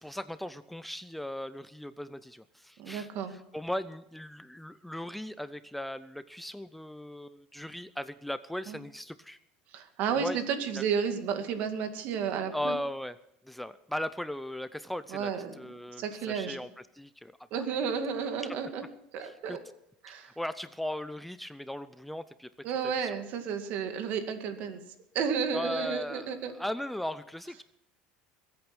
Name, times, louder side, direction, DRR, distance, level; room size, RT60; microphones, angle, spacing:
voice 1, 0.0-9.4 10.1-10.4 10.8-10.9 12.5-13.2 13.4-17.8 18.4-18.6 19.2-19.6 20.1-23.2 25.5-27.6, left 1 dB, 5° left, 14 dB, 0.4 m, -38 dB
voice 2, 2.8-3.3 8.7-8.8 9.7-12.8 15.1-15.5 16.0-16.6 17.5-18.8 19.1-19.6 20.0-20.3 22.6-24.8 25.1-26.5, right 6 dB, 55° right, 7 dB, 2.1 m, -32 dB
21.5 x 8.7 x 6.0 m, 0.79 s
supercardioid pair, 130°, 3 cm